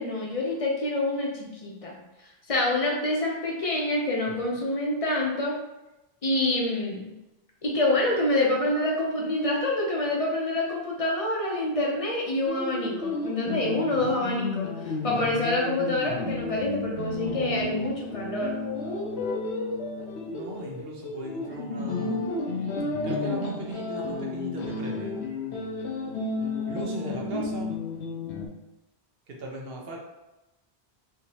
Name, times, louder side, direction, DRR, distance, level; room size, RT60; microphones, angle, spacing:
voice 1, 0.0-2.0 2.5-5.5 6.2-7.1 7.6-18.5 27.3-27.4, left 1 dB, 35° left, -2 dB, 0.7 m, -27 dB
sound 1, 12.5-28.5, left 3 dB, 70° left, 0.9 m, -32 dB
voice 2, 20.3-22.3 23.0-25.1 26.7-27.8 29.3-30.0, right 1 dB, 65° right, -1 dB, 0.9 m, -37 dB
3.4 x 2.8 x 2.8 m, 0.98 s
omnidirectional pair, 1.1 m